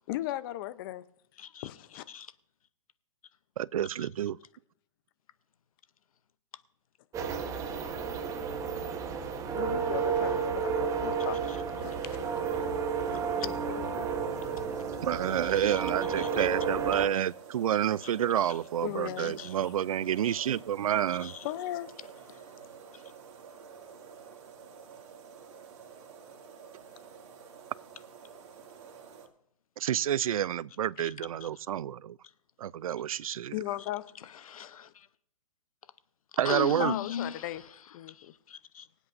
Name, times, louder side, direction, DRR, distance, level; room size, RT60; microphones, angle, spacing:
voice 1, 0.1-1.0 1.4-2.0 9.5-11.4 11.7-12.2 13.1-14.0 18.8-19.7 21.4-21.9 33.5-34.1 36.8-37.6 37.9-38.3, left 15 dB, 40° left, 0.6 m, -37 dB
voice 2, 1.4-1.7 2.1-2.3 4.0-4.1 11.5-11.6 13.4-13.5 15.4-15.7 16.2-16.5 16.9-17.2 18.0-18.1 18.4-18.6 19.2-19.5 20.2-20.3 21.1-21.5 22.3-22.4 22.9-23.0 31.0-31.1 31.4-31.5 33.2-33.3 34.2-35.1 36.4-38.9, left 8 dB, 75° left, 0.8 m, -40 dB
voice 3, 3.6-4.4 15.0-21.3 29.8-32.2 32.6-33.5 36.4-36.9, right 10 dB, 75° right, 0.4 m, -29 dB
sound 1, 7.1-17.1, right 6 dB, 20° right, 1.0 m, -32 dB
sound 2, 11.8-29.3, right 6 dB, 50° right, 2.3 m, -49 dB
24.5 x 8.2 x 2.6 m
hypercardioid pair, 140°, 18 cm